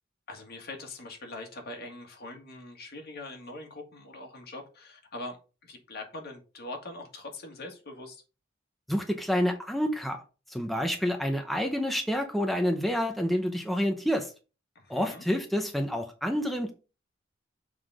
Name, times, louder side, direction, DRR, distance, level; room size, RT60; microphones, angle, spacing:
voice 1, 0.3-5.4 5.6-8.2 14.8-15.2, left 2 dB, 55° left, 1.9 m, -42 dB
voice 2, 8.9-10.2 10.5-14.3 14.9-16.7, equal, ahead, 0.7 m, -28 dB
7.0 x 3.9 x 4.8 m
head